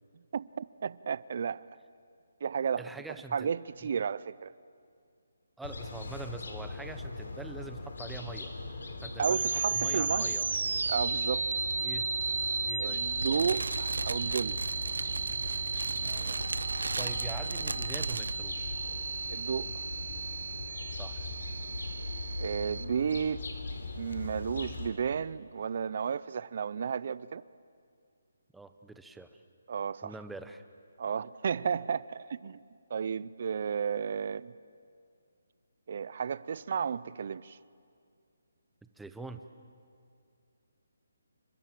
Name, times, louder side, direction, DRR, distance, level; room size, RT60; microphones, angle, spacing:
voice 1, 0.1-1.7 2.4-2.8 3.3-4.5 9.2-10.4 10.9-11.5 12.8-14.6 19.3-19.9 22.4-23.4 23.9-27.4 29.7-30.1 31.0-32.6 32.9-34.5 35.9-37.6, right 7 dB, 45° right, 0.6 m, -33 dB
voice 2, 2.8-3.5 5.6-8.6 9.0-9.5 9.7-10.5 11.8-12.1 12.6-13.0 16.0-16.4 17.0-18.7 21.0-21.3 28.5-29.4 30.0-30.6 39.0-39.4, right 3 dB, 5° right, 0.8 m, -45 dB
sound 1, 5.6-24.9, left 3 dB, 75° left, 3.9 m, -41 dB
sound 2, 9.2-22.8, right 4 dB, 65° right, 1.2 m, -34 dB
Fire, 13.2-18.3, right 3 dB, 85° right, 0.7 m, -36 dB
29.5 x 25.5 x 7.6 m
hypercardioid pair, 170°, 0 cm